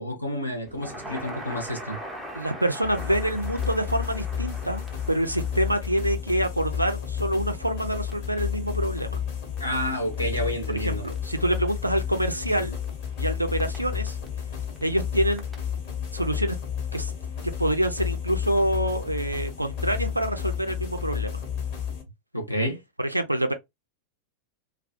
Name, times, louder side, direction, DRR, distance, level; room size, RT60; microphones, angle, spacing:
voice 1, 0.0-2.0 9.6-11.1 22.3-22.8, equal, 90° left, 0.8 m, -29 dB
Crackle, 0.7-16.1, equal, ahead, 0.7 m, -44 dB
voice 2, 2.4-4.8 5.1-9.2 10.8-12.8 13.2-14.2 14.8-15.5 16.1-16.6 16.9-17.1 17.4-21.4 23.0-23.5, right 1 dB, 85° right, 0.4 m, -26 dB
sound 1, 2.8-22.0, left 8 dB, 45° left, 1.0 m, -31 dB
2.2 x 2.0 x 2.8 m
figure-of-eight pair, 90°, 0 cm